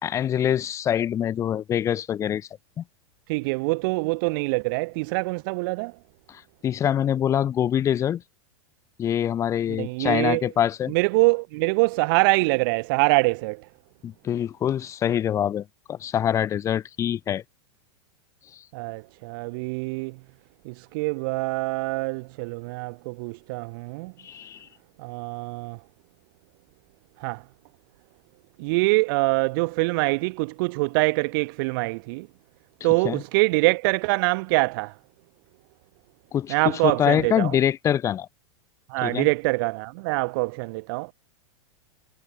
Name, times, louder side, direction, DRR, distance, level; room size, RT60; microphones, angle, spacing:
voice 1, 0.0-2.5 2.8-2.9 6.6-8.2 9.0-10.9 14.0-17.4 24.2-24.7 33.0-33.2 36.3-36.5 36.8-38.3 39.0-39.3, left 10 dB, 20° left, 1.3 m, -24 dB
voice 2, 3.3-5.9 9.7-10.4 10.9-13.6 18.7-20.1 20.6-24.1 25.0-25.8 27.2-27.4 28.6-32.3 32.8-34.9 36.5-37.6 38.9-41.1, right 27 dB, 45° right, 1.3 m, -24 dB
supercardioid pair, 160°, 16 cm